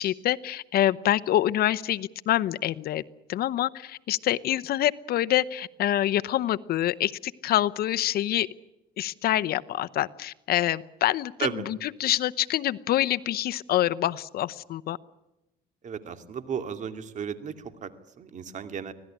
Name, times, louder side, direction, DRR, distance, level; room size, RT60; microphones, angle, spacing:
voice 1, 0.0-3.0 3.3-8.5 9.0-15.0, left 13 dB, 65° left, 15 dB, 0.8 m, -26 dB
voice 2, 15.8-18.9, right 7 dB, 45° right, 9 dB, 2.4 m, -34 dB
25.0 x 17.5 x 9.9 m, 0.97 s
cardioid pair, 110°, 17 cm